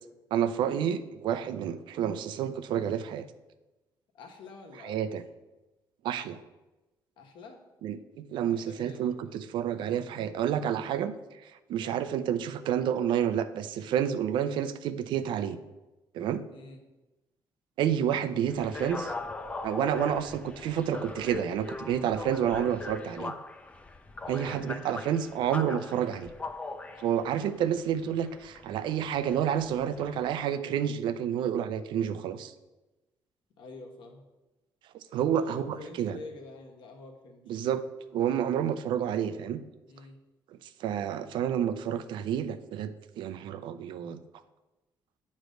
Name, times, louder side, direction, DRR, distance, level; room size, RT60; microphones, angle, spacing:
voice 1, 0.3-3.3 4.8-5.2 6.0-6.4 7.8-11.1 11.4-15.6 16.1-16.4 17.8-19.1 19.6-23.3 24.3-26.3 27.0-32.5 34.9-36.2 37.5-37.8 38.1-39.6 40.8-44.2, right 9 dB, 75° right, 12 dB, 0.5 m, -29 dB
voice 2, 4.1-5.0 7.2-7.6 8.4-9.2 11.8-12.0 16.5-16.8 22.4-22.5 24.2-24.7 33.6-34.2 35.3-37.5 39.9-40.2, left 3 dB, 75° left, 2 dB, 1.3 m, -47 dB
sound 1, 18.5-30.3, left 2 dB, 15° left, 0.4 m, -41 dB
9.1 x 3.2 x 6.4 m, 1.1 s
cardioid pair, 155°, 8 cm